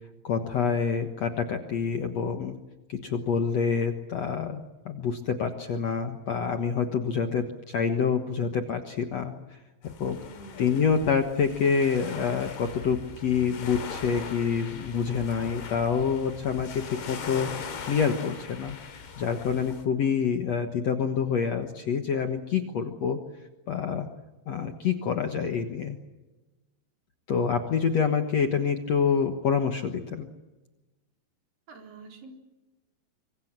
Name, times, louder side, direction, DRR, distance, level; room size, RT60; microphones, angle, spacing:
voice 1, 0.2-2.6 2.9-9.3 9.8-10.2 10.6-17.5 17.8-23.2 23.7-24.1 24.5-26.0 27.3-30.3, left 6 dB, 55° left, 6 dB, 2.0 m, -27 dB
sound 1, 9.8-19.9, left 6 dB, 75° left, 4.9 m, -40 dB
voice 2, 10.3-10.9 31.7-32.3, right 2 dB, 60° right, 3 dB, 5.6 m, -47 dB
25.5 x 25.0 x 7.6 m, 1.1 s
omnidirectional pair, 4.6 m